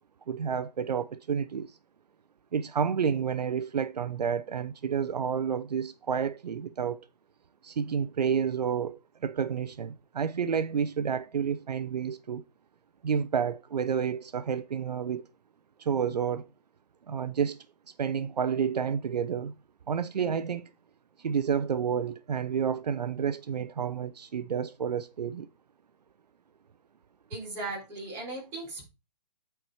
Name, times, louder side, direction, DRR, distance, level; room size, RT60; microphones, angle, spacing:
voice 1, 0.3-1.8 2.5-7.1 7.6-12.4 13.0-15.3 15.8-16.5 17.1-17.6 18.0-19.6 19.9-20.7 21.2-25.5, right 7 dB, 75° right, 0.7 m, -30 dB
voice 2, 27.3-28.9, right 2 dB, 10° right, 3.4 m, -37 dB
9.1 x 4.7 x 4.7 m
hypercardioid pair, 175°, 21 cm